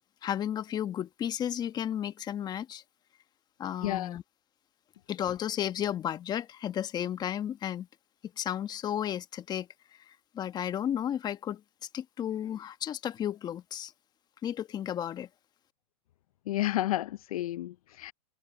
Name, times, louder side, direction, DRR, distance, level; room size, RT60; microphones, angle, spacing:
voice 1, 0.2-2.8 3.6-4.2 5.1-7.9 8.4-9.7 10.1-11.6 11.9-13.9 14.4-15.3, left 10 dB, 20° left, 1.2 m, -33 dB
voice 2, 3.8-4.2 16.5-18.1, left 14 dB, 70° left, 0.5 m, -31 dB
hypercardioid pair, 135°, 19 cm